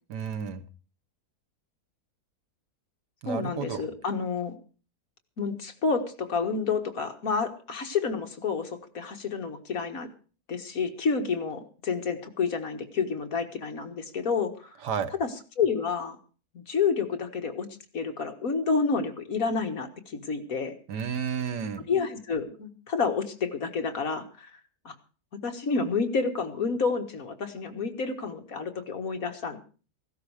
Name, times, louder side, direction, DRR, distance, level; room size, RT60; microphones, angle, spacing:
voice 1, 0.1-0.6 3.2-3.8 14.8-15.1 20.9-21.9, right 7 dB, 90° right, 11 dB, 1.8 m, -31 dB
voice 2, 3.3-4.5 5.4-10.1 10.5-14.8 15.2-15.3 15.6-16.2 16.5-17.7 17.9-20.7 21.9-24.6 24.9-25.0 25.4-29.6, left 5 dB, 60° left, 5 dB, 2.0 m, -29 dB
16.0 x 13.0 x 4.8 m, 0.37 s
omnidirectional pair, 1.7 m